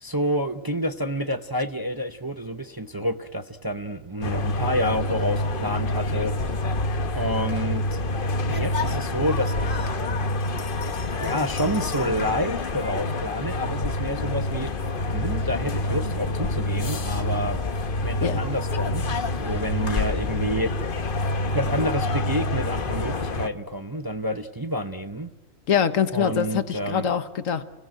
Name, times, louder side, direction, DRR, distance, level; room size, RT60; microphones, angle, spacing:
voice 1, 0.0-6.3 7.1-8.0 8.5-9.9 11.2-14.7 15.1-17.6 18.0-20.8 21.5-25.3 26.1-27.1, equal, 20° right, 8 dB, 0.7 m, -29 dB
sound 1, 4.2-23.5, left 2 dB, 45° left, 1.2 m, -27 dB
voice 2, 25.7-27.6, left 8 dB, 75° left, 10 dB, 1.6 m, -24 dB
29.0 x 18.0 x 8.9 m, 1.2 s
omnidirectional pair, 1.4 m